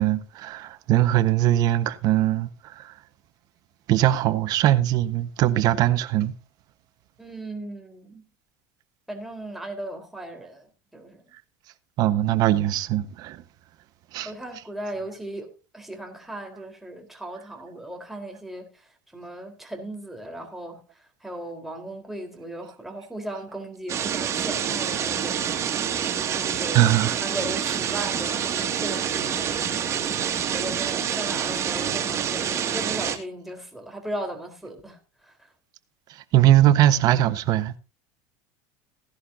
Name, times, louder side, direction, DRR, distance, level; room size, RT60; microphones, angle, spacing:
voice 1, 0.0-2.9 3.9-6.3 12.0-13.4 14.1-14.3 26.7-27.1 36.3-37.7, right 13 dB, 50° right, 1.3 m, -21 dB
voice 2, 7.2-8.2 9.1-11.2 14.2-15.5 15.7-20.8 21.2-25.8 26.3-26.9 27.2-29.7 30.5-35.5, right 1 dB, 5° right, 4.0 m, -37 dB
sound 1, 23.9-33.2, right 8 dB, 35° right, 2.3 m, -27 dB
16.5 x 11.0 x 2.7 m
supercardioid pair, 120°, 8 cm